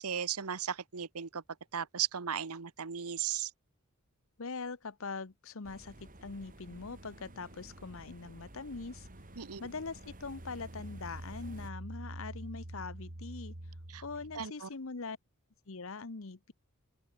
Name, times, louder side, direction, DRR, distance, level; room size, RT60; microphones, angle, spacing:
voice 1, 0.0-1.4 1.7-3.5 9.4-9.6 13.9-14.0 14.3-14.7, right 8 dB, 85° right, 1.1 m, -36 dB
voice 2, 4.4-9.1 9.6-13.5 14.0-15.2 15.7-16.5, left 4 dB, 65° left, 0.9 m, -42 dB
sound 1, 5.6-11.7, right 1 dB, 40° right, 3.5 m, -54 dB
sound 2, 6.7-14.5, right 1 dB, 60° right, 2.7 m, -48 dB
open air
head